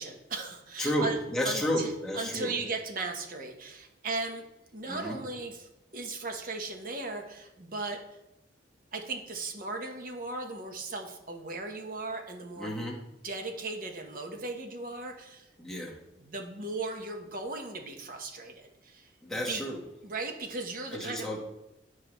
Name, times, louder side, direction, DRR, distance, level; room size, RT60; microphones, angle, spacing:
voice 1, 0.0-1.2 1.4-1.9 2.1-4.4 4.7-8.0 8.9-12.8 13.2-15.5 16.2-19.1 19.3-19.6 20.0-21.3, right 3 dB, 50° right, 4 dB, 0.9 m, -37 dB
voice 2, 0.8-2.5 4.8-5.2 12.6-13.0 15.6-15.9 19.2-19.8 20.9-21.4, equal, 5° left, -3 dB, 1.2 m, -31 dB
10.5 x 4.7 x 3.0 m, 0.90 s
head